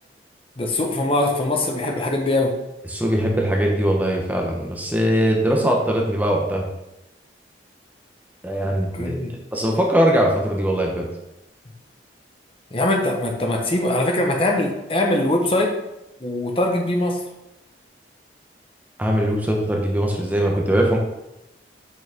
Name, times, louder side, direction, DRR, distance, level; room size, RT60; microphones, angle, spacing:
voice 1, 0.6-2.5 8.6-9.3 12.7-15.8 16.2-17.2, left 1 dB, 30° left, 2 dB, 1.1 m, -22 dB
voice 2, 2.9-6.7 8.4-9.2 9.5-11.0 19.0-21.0, equal, 10° right, 0 dB, 0.9 m, -21 dB
8.5 x 6.3 x 3.6 m, 0.92 s
head